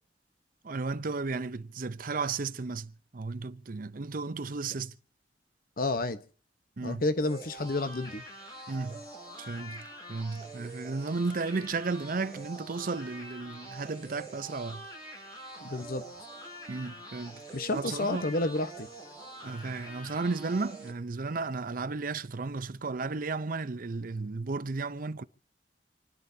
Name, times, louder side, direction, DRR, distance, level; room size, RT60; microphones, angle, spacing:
voice 1, 0.6-4.9 6.8-7.0 8.7-9.0 9.4-14.9 16.7-17.4 17.7-18.3 19.4-25.2, right 3 dB, 50° right, 0.6 m, -34 dB
voice 2, 5.8-6.2 6.8-8.2 15.6-16.0 17.5-18.9, left 2 dB, 55° left, 1.0 m, -30 dB
sound 1, 7.2-20.9, right 1 dB, 20° left, 7.3 m, -45 dB
28.5 x 10.5 x 2.7 m
head